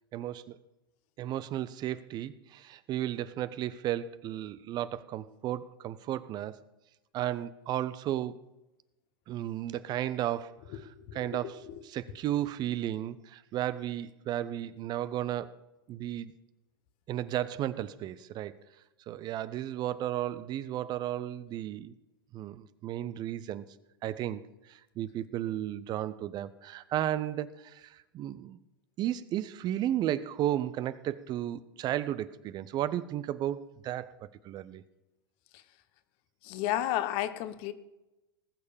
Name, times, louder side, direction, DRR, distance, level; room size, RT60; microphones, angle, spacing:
voice 1, 0.1-0.6 1.2-6.6 7.1-8.4 9.3-10.6 11.1-11.6 11.9-15.5 15.9-16.3 17.1-18.5 19.1-21.9 22.3-23.6 24.0-24.4 24.7-28.6 29.0-34.8, right 12 dB, 35° right, 16 dB, 0.7 m, -34 dB
voice 2, 10.7-11.8 35.5-35.6 36.4-37.7, left 13 dB, 50° left, 12 dB, 1.2 m, -33 dB
19.0 x 6.6 x 7.1 m, 0.97 s
hypercardioid pair, 100°, 12 cm